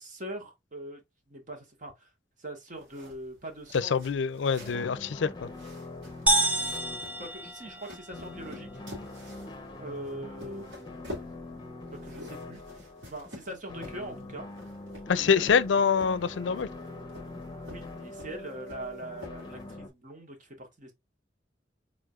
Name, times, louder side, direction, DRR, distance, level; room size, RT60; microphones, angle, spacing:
voice 1, 0.0-2.1 2.4-4.0 7.2-8.7 9.8-11.2 11.9-12.8 13.1-14.5 15.2-15.6 17.6-20.9, right 1 dB, 45° right, 1.6 m, -42 dB
sound 1, 2.7-19.7, left 1 dB, 85° right, 2.9 m, -49 dB
voice 2, 3.7-5.5 15.1-16.7, left 6 dB, 85° left, 0.4 m, -25 dB
sound 2, 4.6-19.9, left 2 dB, 25° left, 1.1 m, -43 dB
sound 3, 6.3-8.2, right 1 dB, 10° right, 0.6 m, -28 dB
4.7 x 4.1 x 2.4 m
head